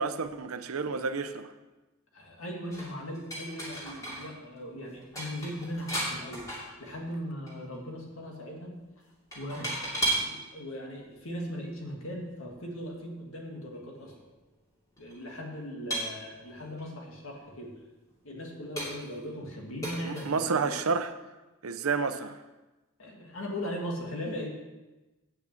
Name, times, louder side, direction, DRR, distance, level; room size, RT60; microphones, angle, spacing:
voice 1, 0.0-1.5 20.0-21.1 21.6-22.4, right 4 dB, 85° right, 0.7 m, -30 dB
voice 2, 2.1-6.5 6.8-8.8 9.3-9.7 10.3-14.1 15.0-17.7 18.2-20.8 23.0-24.5, equal, 70° left, 2.1 m, -39 dB
sound 1, 2.7-4.3 4.6-4.7 5.0-7.1 7.5-7.8 9.3-10.3 11.2-11.3 13.7-13.8 14.0-14.2 15.0-15.1 15.9-16.8 17.4-17.5 18.1-18.2 18.8-19.2 19.8-20.3, right 1 dB, 15° left, 2.6 m, -35 dB
8.5 x 6.1 x 7.7 m
head